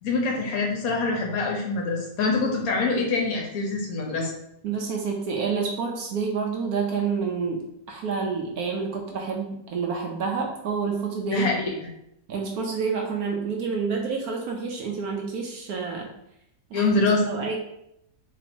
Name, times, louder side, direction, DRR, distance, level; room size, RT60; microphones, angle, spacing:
voice 1, 0.0-4.3 11.3-11.7 16.7-17.3, left 3 dB, 60° left, 0 dB, 1.1 m, -24 dB
voice 2, 4.6-11.5 12.3-16.1 16.7-16.9 17.3-17.6, right 5 dB, 70° right, 1 dB, 1.0 m, -28 dB
3.2 x 2.8 x 4.2 m, 0.79 s
omnidirectional pair, 1.9 m